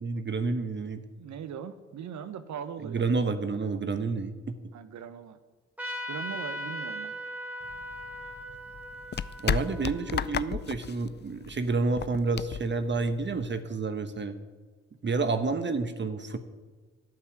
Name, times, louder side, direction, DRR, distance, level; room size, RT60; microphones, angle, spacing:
voice 1, 0.0-1.0 2.8-4.6 9.4-14.4 15.0-16.4, right 3 dB, 35° right, 9 dB, 1.2 m, -29 dB
voice 2, 1.1-3.2 4.7-5.4 6.1-7.1 15.1-15.3, right 8 dB, 65° right, 12 dB, 1.1 m, -40 dB
Trumpet, 5.8-10.9, equal, 5° right, 3.0 m, -39 dB
sound 1, 7.6-13.6, left 7 dB, 35° left, 0.5 m, -34 dB
14.5 x 5.7 x 9.6 m, 1.4 s
hypercardioid pair, 40°, 31 cm